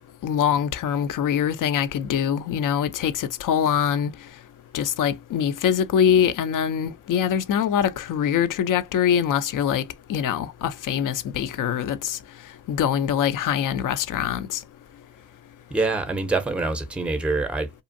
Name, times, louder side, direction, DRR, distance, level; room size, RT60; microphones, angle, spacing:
voice 1, 0.2-4.1 4.7-9.8 10.1-12.2 12.7-14.6, left 8 dB, 40° left, 0.5 m, -23 dB
voice 2, 15.7-17.7, right 3 dB, ahead, 0.7 m, -25 dB
2.7 x 2.4 x 2.5 m
hypercardioid pair, 55°, 49 cm